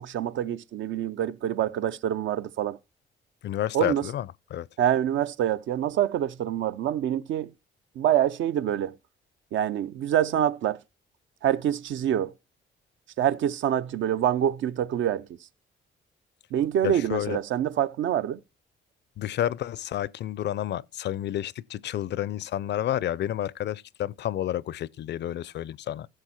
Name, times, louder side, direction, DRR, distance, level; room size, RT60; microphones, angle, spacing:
voice 1, 0.0-2.8 3.7-4.0 4.8-7.5 8.0-9.0 9.5-10.8 11.4-12.3 13.2-15.3 16.5-18.4, right 10 dB, 75° right, 0.6 m, -26 dB
voice 2, 3.4-4.7 16.8-17.4 19.2-26.1, left 12 dB, 60° left, 0.5 m, -30 dB
15.5 x 6.2 x 4.3 m
cardioid pair, 90°, 20 cm